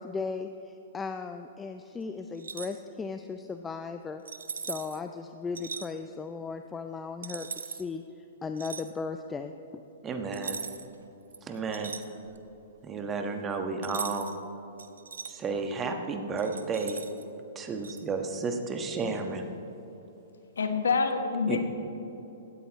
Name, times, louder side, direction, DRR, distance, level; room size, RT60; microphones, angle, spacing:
voice 1, 0.0-4.2 4.5-9.5, left 4 dB, 15° left, 7 dB, 0.5 m, -37 dB
sound 1, 2.3-2.8 4.2-5.0 5.5-5.9 7.2-7.8 8.6-8.9 10.3-10.9 11.3-12.5 13.8-14.4 14.8-15.3 16.4-17.2 17.8-18.0, right 5 dB, 80° right, 0.8 m, -39 dB
voice 2, 10.0-10.6 11.4-11.9 12.8-14.3 15.2-17.0 17.5-19.5 21.5-21.6, right 4 dB, 20° right, 4 dB, 1.4 m, -32 dB
voice 3, 20.6-21.6, left 4 dB, 80° left, 6 dB, 1.4 m, -26 dB
17.0 x 13.5 x 3.1 m, 3.0 s
hypercardioid pair, 120°, 0 cm